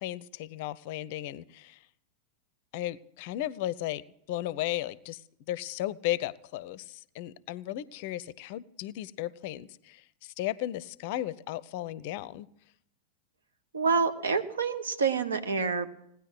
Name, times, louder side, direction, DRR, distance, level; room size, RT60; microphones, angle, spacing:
voice 1, 0.0-1.8 2.7-5.2 5.5-12.5, left 14 dB, 50° left, 21 dB, 0.5 m, -35 dB
voice 2, 13.7-15.9, right 5 dB, 70° right, 9 dB, 1.3 m, -27 dB
18.0 x 10.0 x 7.7 m, 0.75 s
figure-of-eight pair, 90°, 0 cm